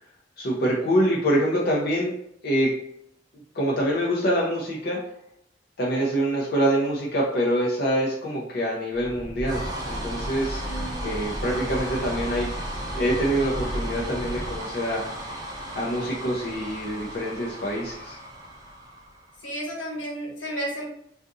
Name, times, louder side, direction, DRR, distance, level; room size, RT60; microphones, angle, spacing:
voice 1, 0.4-2.2 2.4-2.7 3.5-5.0 5.8-10.6 11.0-12.5 12.9-15.0 15.8-18.2, equal, 55° left, -4 dB, 0.6 m, -25 dB
sound 1, 8.9-19.4, equal, 20° right, 0.6 m, -33 dB
voice 2, 10.6-11.1 19.4-20.8, right 1 dB, 85° left, -2 dB, 1.2 m, -33 dB
3.7 x 2.4 x 2.6 m, 0.73 s
head